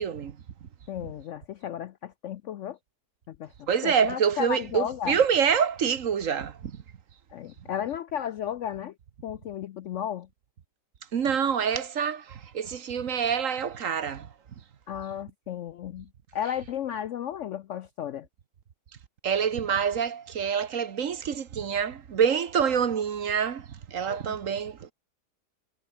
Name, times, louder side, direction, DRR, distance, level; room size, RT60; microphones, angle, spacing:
voice 1, 0.0-0.7 3.7-6.8 11.1-14.3 19.2-24.9, right 7 dB, 55° right, 1.4 m, -26 dB
voice 2, 0.9-2.8 3.3-5.2 7.3-8.9 9.2-10.3 14.9-18.3 24.1-24.3, left 10 dB, 70° left, 0.7 m, -34 dB
omnidirectional pair, 1.7 m